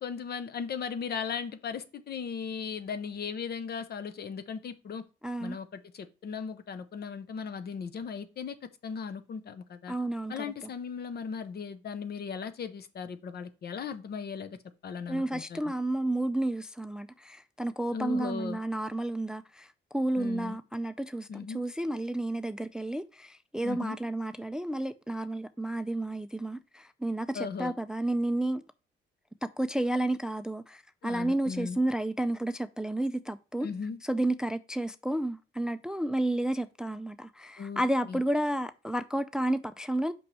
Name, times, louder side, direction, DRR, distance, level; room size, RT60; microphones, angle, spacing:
voice 1, 0.0-5.0 5.4-8.6 8.8-9.9 10.3-14.6 14.8-15.6 17.9-18.6 20.2-20.6 21.3-21.6 23.6-24.0 27.3-27.7 31.0-31.8 33.6-34.0 37.6-38.2, left 6 dB, 55° left, 0.8 m, -37 dB
voice 2, 5.2-5.6 9.9-10.7 15.1-28.6 29.6-33.7 34.0-40.1, right 1 dB, 5° right, 0.4 m, -31 dB
5.8 x 5.4 x 3.2 m
cardioid pair, 90°, 20 cm